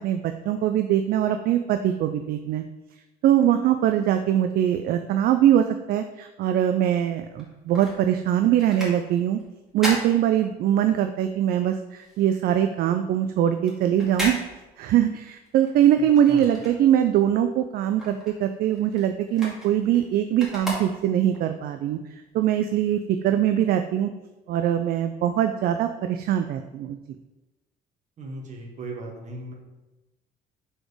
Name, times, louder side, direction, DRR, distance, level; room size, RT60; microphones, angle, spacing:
voice 1, 0.0-2.6 3.2-9.4 9.7-14.4 14.8-22.0 22.3-24.1 24.5-27.0, right 10 dB, 65° right, 8 dB, 0.4 m, -22 dB
sound 1, 7.3-11.0 11.3-17.3 17.6-21.4 21.9-22.0, equal, ahead, 2.1 m, -36 dB
voice 2, 28.2-29.5, right 2 dB, 45° right, 1 dB, 1.4 m, -37 dB
4.7 x 4.3 x 4.9 m, 1.0 s
cardioid pair, 110°, 17 cm